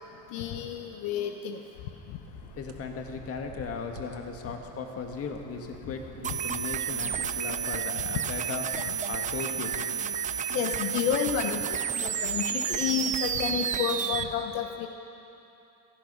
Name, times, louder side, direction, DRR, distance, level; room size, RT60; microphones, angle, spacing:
voice 1, 0.3-1.6 10.5-14.9, left 8 dB, 75° left, 5 dB, 1.0 m, -30 dB
sound 1, 2.2-8.6, right 8 dB, 65° right, 1.5 m, -51 dB
voice 2, 2.5-9.7, left 5 dB, 40° left, 4 dB, 1.7 m, -37 dB
sound 2, 6.2-14.2, right 8 dB, 20° right, 0.5 m, -31 dB
18.0 x 14.5 x 5.4 m, 2.9 s
cardioid pair, 135°, 36 cm